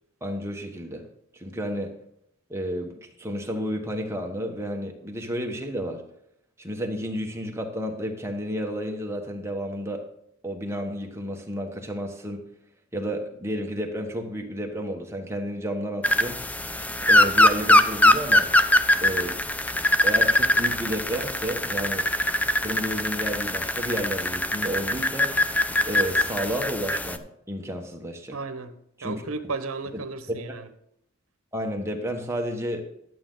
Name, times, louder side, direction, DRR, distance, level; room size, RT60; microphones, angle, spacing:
voice 1, 0.2-1.0 1.3-1.9 2.5-6.0 6.6-10.0 10.4-12.5 12.9-16.4 17.1-18.5 19.0-19.4 20.0-22.1 22.6-25.4 25.8-28.4 29.0-29.2 30.3-30.4 31.5-32.8, equal, 10° right, 2 dB, 1.1 m, -31 dB
sound 1, 16.0-27.2, left 1 dB, 5° left, 0.3 m, -22 dB
voice 2, 28.3-28.8 29.0-30.7, right 4 dB, 80° right, 10 dB, 0.9 m, -34 dB
11.5 x 7.5 x 3.8 m, 0.75 s
head